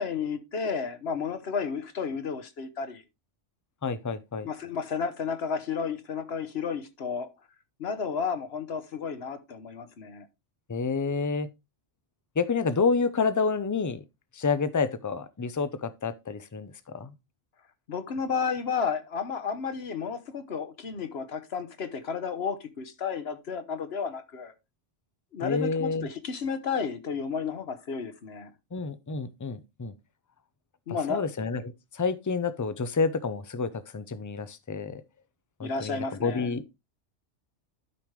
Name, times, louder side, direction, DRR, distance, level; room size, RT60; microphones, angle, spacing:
voice 1, 0.0-3.0 4.4-7.3 7.8-10.3 17.9-24.5 25.3-28.5 30.9-31.2 35.6-36.5, left 6 dB, 60° left, 1.2 m, -32 dB
voice 2, 3.8-4.5 10.7-11.5 12.4-14.0 14.3-17.1 25.4-26.1 28.7-29.9 31.1-35.0 35.6-36.6, left 4 dB, 30° left, 0.4 m, -29 dB
12.0 x 5.1 x 3.2 m
omnidirectional pair, 1.2 m